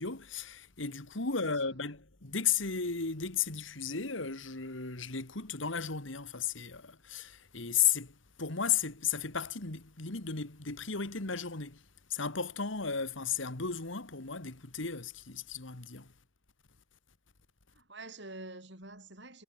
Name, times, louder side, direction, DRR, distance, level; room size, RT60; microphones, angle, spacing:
voice 1, 0.0-11.8 12.1-16.1, left 7 dB, 80° left, 2.3 m, -34 dB
voice 2, 1.3-1.9 17.7-19.4, right 2 dB, 60° right, 8.0 m, -48 dB
head